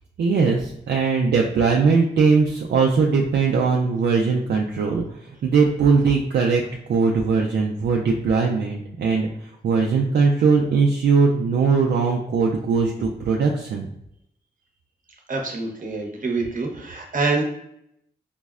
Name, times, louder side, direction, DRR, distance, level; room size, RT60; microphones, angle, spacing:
voice 1, 0.2-13.9, right 5 dB, 70° right, 0 dB, 0.4 m, -20 dB
voice 2, 15.3-17.4, right 3 dB, 50° right, 1 dB, 0.9 m, -26 dB
5.2 x 2.0 x 2.3 m, 0.76 s
cardioid pair, 60°, 18 cm